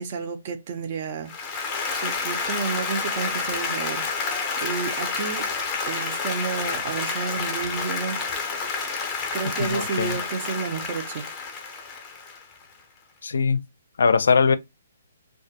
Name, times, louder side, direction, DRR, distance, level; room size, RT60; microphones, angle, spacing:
voice 1, 0.0-1.3 2.0-5.5 5.8-8.3 9.3-11.3, right 5 dB, 35° right, 0.5 m, -31 dB
Applause, 1.3-12.6, left 4 dB, 15° left, 0.5 m, -29 dB
voice 2, 9.6-10.2 13.2-13.6 14.0-14.6, left 5 dB, 80° left, 0.4 m, -21 dB
2.3 x 2.1 x 2.7 m
hypercardioid pair, 165°, 0 cm